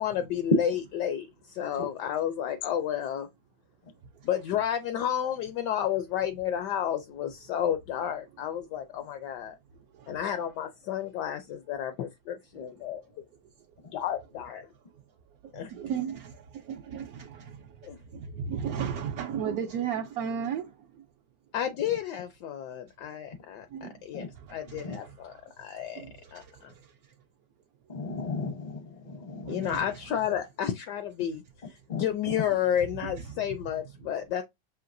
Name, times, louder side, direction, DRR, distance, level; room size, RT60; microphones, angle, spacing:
voice 1, 0.0-3.3 4.2-9.6 10.1-13.0 13.9-14.6 15.5-15.7 17.8-18.0 21.5-26.0 26.3-26.7 29.5-31.4 31.7-34.4, left 10 dB, 75° left, 1.1 m, -31 dB
voice 2, 15.4-21.0 23.7-24.0 24.4-25.4 25.9-26.9 29.4-29.8 33.0-33.1, right 7 dB, 70° right, 0.9 m, -36 dB
voice 3, 27.9-29.8 31.9-32.0, left 4 dB, 45° left, 0.5 m, -36 dB
5.7 x 2.7 x 2.5 m
omnidirectional pair, 2.0 m